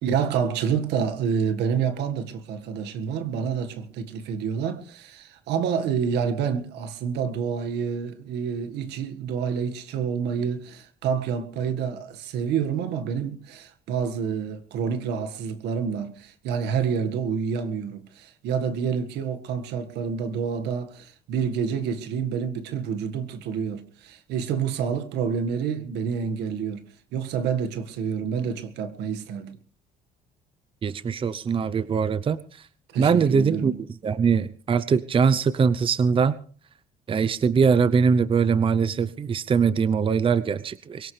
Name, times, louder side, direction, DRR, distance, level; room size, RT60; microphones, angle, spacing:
voice 1, 0.0-26.9 27.1-29.6 32.9-33.8, right 7 dB, 85° right, 1.8 m, -28 dB
voice 2, 30.8-32.6 33.0-33.7 34.0-36.4 37.1-41.1, right 6 dB, 30° right, 0.7 m, -22 dB
22.5 x 17.5 x 3.4 m
cardioid pair, 110°, 17 cm